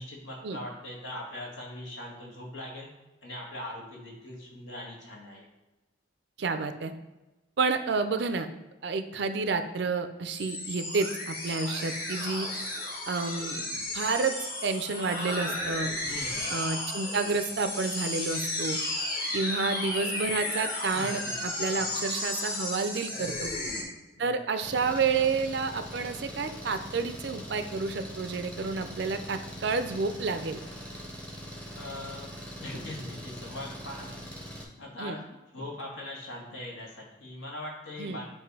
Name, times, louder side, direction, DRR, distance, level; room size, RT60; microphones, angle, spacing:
voice 1, 0.0-2.9 3.2-5.4 16.1-16.5 20.9-21.3 21.7-22.0 23.2-23.4 24.2-24.4 31.7-32.3 32.6-34.1 34.8-38.3, left 1 dB, 70° left, -3 dB, 1.7 m, -41 dB
voice 2, 6.4-6.9 7.6-8.5 8.8-12.5 13.1-15.9 16.5-18.8 19.3-23.5 24.2-30.6 35.0-35.2 38.0-38.2, right 4 dB, 60° right, 9 dB, 0.4 m, -30 dB
sound 1, 10.2-23.8, left 2 dB, 45° left, 1.4 m, -34 dB
Engine, 24.6-34.6, equal, 5° left, 0.7 m, -42 dB
7.8 x 2.6 x 4.7 m, 1.1 s
head